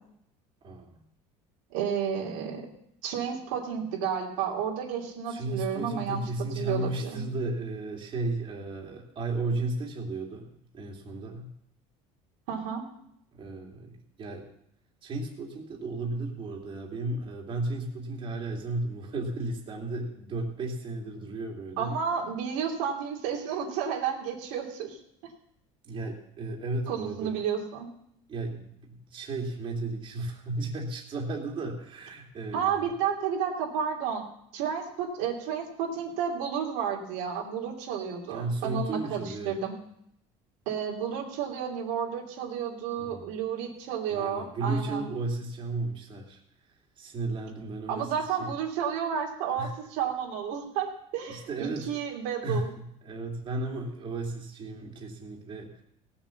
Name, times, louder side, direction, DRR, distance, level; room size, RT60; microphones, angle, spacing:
voice 1, 0.6-0.9 5.3-11.5 13.3-14.4 15.0-21.9 25.8-27.4 28.3-32.9 38.3-39.6 43.0-43.3 44.1-46.4 47.0-48.5 49.6-49.7 51.3-52.0 52.4-52.7 53.0-55.8, right 2 dB, 35° right, -1 dB, 2.8 m, -34 dB
voice 2, 1.7-2.6 3.0-6.2 6.5-7.2 12.5-12.8 21.8-25.0 26.9-27.9 32.5-34.2 34.5-39.7 40.7-45.0 47.9-52.7, right 7 dB, 85° right, -1 dB, 3.1 m, -31 dB
17.5 x 7.2 x 7.1 m, 0.74 s
cardioid pair, 125°, 14 cm